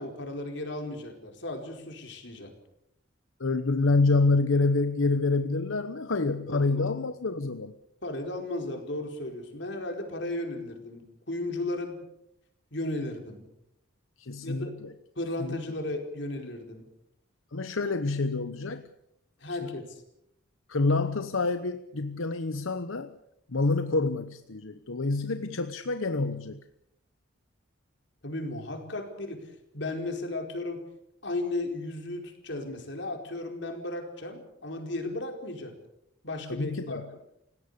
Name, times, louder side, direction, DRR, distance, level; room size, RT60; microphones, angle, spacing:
voice 1, 0.0-2.5 6.5-6.9 8.0-12.0 12.7-13.4 14.4-14.8 15.2-16.9 19.4-20.0 28.2-30.8 31.2-35.8 36.2-37.0, left 2 dB, 60° left, 4 dB, 4.6 m, -35 dB
voice 2, 3.4-7.7 14.2-14.9 15.4-15.6 17.5-18.9 19.6-19.7 20.7-23.1 23.5-26.6 36.5-37.1, left 3 dB, 80° left, 10 dB, 1.0 m, -27 dB
29.0 x 17.5 x 6.8 m, 0.80 s
head